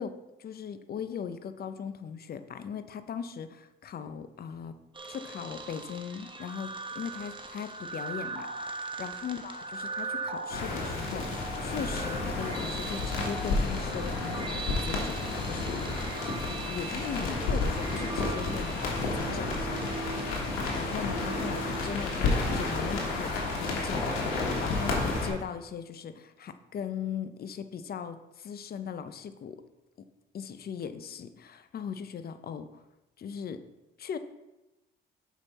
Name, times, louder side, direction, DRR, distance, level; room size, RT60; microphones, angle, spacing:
voice 1, 0.0-4.7 5.1-16.3 16.6-20.1 20.7-24.1 24.6-29.6 30.3-32.8 33.2-33.6 34.0-34.2, left 7 dB, 50° left, 10 dB, 0.6 m, -39 dB
sound 1, 4.9-23.2, right 3 dB, 25° right, 0.9 m, -40 dB
sound 2, 10.5-25.3, left 3 dB, 90° left, 1.7 m, -31 dB
6.2 x 5.4 x 4.2 m, 1.0 s
supercardioid pair, 75°, 21 cm